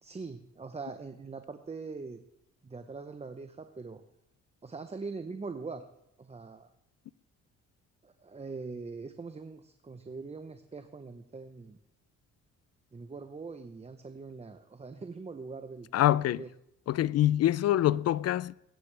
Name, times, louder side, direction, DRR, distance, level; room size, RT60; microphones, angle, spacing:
voice 1, 0.0-2.2 2.6-4.0 4.6-5.9 6.2-6.7 8.0-11.8 12.9-16.0 16.4-16.5, right 4 dB, 20° right, 0.8 m, -42 dB
voice 2, 15.9-16.4 16.9-18.5, left 13 dB, 55° left, 0.5 m, -25 dB
21.5 x 9.2 x 3.4 m
cardioid pair, 90°, 30 cm